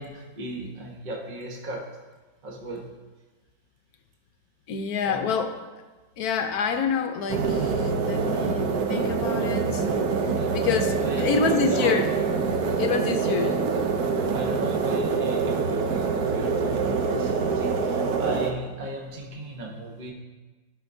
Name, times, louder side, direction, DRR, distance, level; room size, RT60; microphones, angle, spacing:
voice 1, 0.0-1.9 2.4-2.9 5.0-5.3 10.3-12.1 14.3-20.1, right 1 dB, 35° right, 0 dB, 1.0 m, -36 dB
voice 2, 4.7-5.5 6.2-9.8 10.5-12.0 12.8-13.6 18.0-18.2, left 6 dB, 65° left, 6 dB, 1.1 m, -27 dB
sound 1, 7.3-18.5, right 5 dB, 65° right, 1.1 m, -25 dB
15.0 x 5.8 x 2.7 m, 1.2 s
omnidirectional pair, 1.9 m